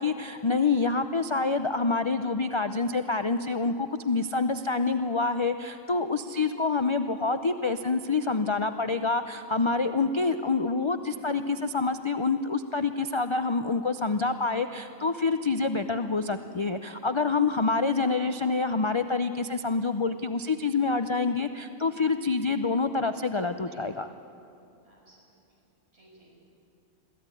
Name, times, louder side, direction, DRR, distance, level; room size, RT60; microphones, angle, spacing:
voice 1, 0.0-24.1, left 4 dB, 50° left, 9 dB, 0.3 m, -27 dB
voice 2, 11.1-11.4 23.6-23.9 24.8-25.3 25.9-26.3, right 1 dB, 45° right, -4 dB, 6.9 m, -57 dB
22.5 x 15.0 x 9.9 m, 2.6 s
omnidirectional pair, 1.4 m